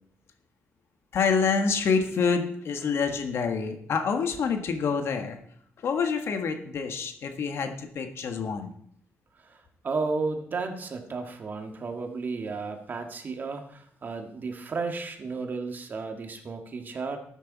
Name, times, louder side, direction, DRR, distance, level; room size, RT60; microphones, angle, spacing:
voice 1, 1.1-5.4 5.8-8.7, left 5 dB, 65° left, 6 dB, 1.5 m, -27 dB
voice 2, 9.4-17.2, right 4 dB, 45° right, 5 dB, 1.8 m, -33 dB
13.0 x 9.2 x 4.1 m, 0.65 s
cardioid pair, 120°, 5 cm